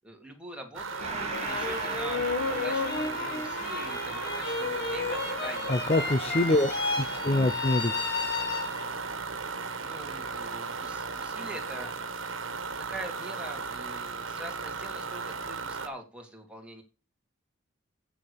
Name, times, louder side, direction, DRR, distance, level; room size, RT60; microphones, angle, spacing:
voice 1, 0.0-2.2 2.5-6.1 6.5-6.7 7.1-7.4 9.8-11.9 12.8-16.8, right 1 dB, 5° right, 2.6 m, -44 dB
sound 1, 0.7-15.9, right 4 dB, 90° right, 1.4 m, -36 dB
sound 2, 0.9-9.1, left 4 dB, 60° left, 1.9 m, -33 dB
Gong, 1.0-8.0, right 4 dB, 35° right, 1.6 m, -41 dB
voice 2, 5.7-6.7 7.0-8.1, left 1 dB, 30° left, 0.6 m, -25 dB
8.4 x 6.8 x 7.0 m
head